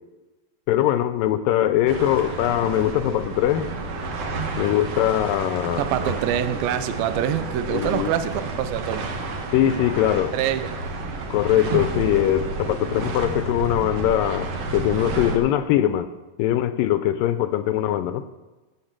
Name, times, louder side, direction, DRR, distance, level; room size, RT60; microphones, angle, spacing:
voice 1, 0.7-3.7 4.6-5.9 7.7-8.1 9.5-10.4 11.3-16.1 16.4-18.2, left 12 dB, 80° left, 11 dB, 2.2 m, -22 dB
sound 1, 1.9-15.4, right 3 dB, 55° right, 2.1 m, -30 dB
voice 2, 5.8-9.1 10.3-10.7, right 10 dB, 85° right, 10 dB, 2.5 m, -25 dB
16.5 x 6.7 x 7.4 m, 1.2 s
omnidirectional pair, 4.1 m